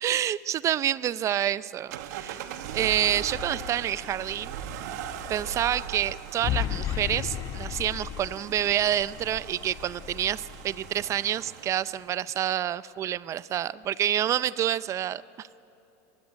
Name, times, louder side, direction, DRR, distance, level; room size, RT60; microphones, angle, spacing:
voice 1, 0.0-2.4 2.7-4.6 5.3-15.6, right 11 dB, 30° right, 18 dB, 0.5 m, -28 dB
sound 1, 1.9-12.1, right 10 dB, 70° right, 1.7 m, -40 dB
sound 2, 3.0-11.1, left 12 dB, 40° left, 0.6 m, -37 dB
24.0 x 21.0 x 9.4 m, 3.0 s
supercardioid pair, 120°, 9 cm